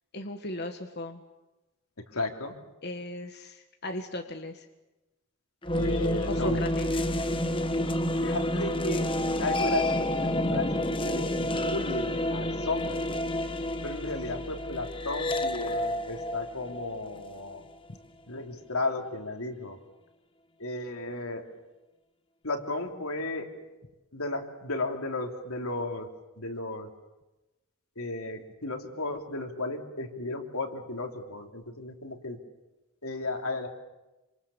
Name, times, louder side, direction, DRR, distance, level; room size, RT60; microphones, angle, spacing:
voice 1, 0.1-1.2 2.8-4.7 6.3-7.0, left 1 dB, 50° left, 5 dB, 1.7 m, -37 dB
voice 2, 2.1-2.5 5.7-6.6 8.2-13.2 13.8-17.6 18.3-19.8 20.6-21.6 22.4-23.7 24.1-26.1 26.4-26.9 28.0-32.4 33.0-33.7, left 2 dB, 85° left, 4 dB, 3.2 m, -34 dB
sound 1, 5.6-17.8, left 1 dB, 25° left, 1.3 m, -29 dB
27.0 x 26.5 x 7.1 m, 1.0 s
head